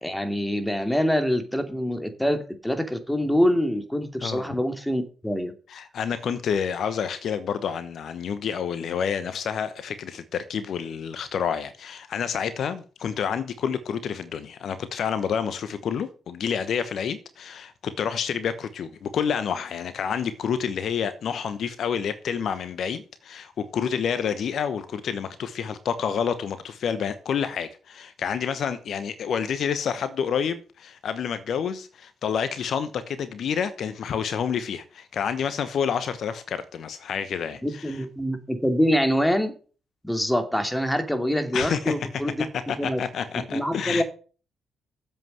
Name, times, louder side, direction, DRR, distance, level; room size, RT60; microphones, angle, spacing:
voice 1, 0.0-5.5 37.6-39.5 40.0-42.4 42.8-43.0 43.3-44.0, equal, 5° left, 2.8 m, -25 dB
voice 2, 5.7-38.0 41.5-41.9 42.7-44.0, left 7 dB, 60° left, 1.0 m, -29 dB
9.0 x 7.9 x 7.9 m
hypercardioid pair, 45°, 0 cm